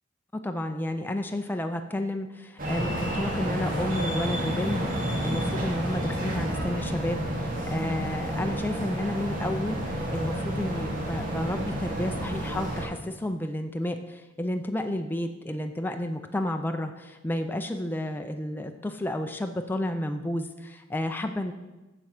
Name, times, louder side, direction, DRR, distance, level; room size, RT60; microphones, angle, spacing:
voice 1, 0.3-21.5, left 1 dB, 10° left, 5 dB, 0.4 m, -31 dB
Beijing Subway (China), 2.6-12.9, equal, 50° right, 2.2 m, -30 dB
7.5 x 7.0 x 6.5 m, 1.1 s
head